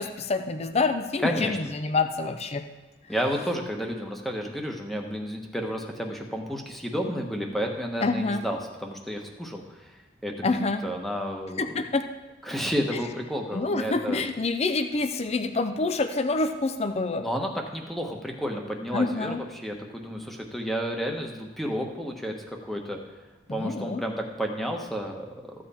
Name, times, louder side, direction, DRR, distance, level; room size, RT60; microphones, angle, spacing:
voice 1, 0.0-2.6 8.0-8.5 10.4-10.8 11.6-12.1 13.5-17.3 18.9-19.4 23.5-24.0, left 3 dB, 35° left, 8 dB, 0.5 m, -27 dB
voice 2, 1.2-1.6 3.1-9.6 10.2-10.3 10.8-11.6 12.5-14.2 17.2-23.0 23.5-25.2, equal, ahead, 1 dB, 1.1 m, -31 dB
14.0 x 7.6 x 4.3 m, 1.1 s
head